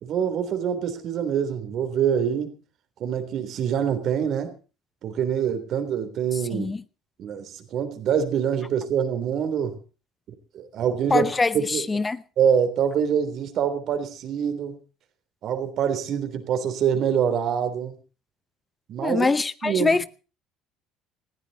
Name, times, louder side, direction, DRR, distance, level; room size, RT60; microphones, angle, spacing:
voice 1, 0.0-2.6 3.0-4.5 5.0-6.7 7.2-9.8 10.5-11.3 11.5-11.8 12.4-14.8 15.4-17.9 18.9-19.3 19.6-20.0, right 8 dB, 60° right, 3.4 m, -25 dB
voice 2, 6.5-6.8 11.1-12.2 19.0-20.1, left 3 dB, 25° left, 0.8 m, -23 dB
19.5 x 15.0 x 4.1 m
hypercardioid pair, 70°, 0 cm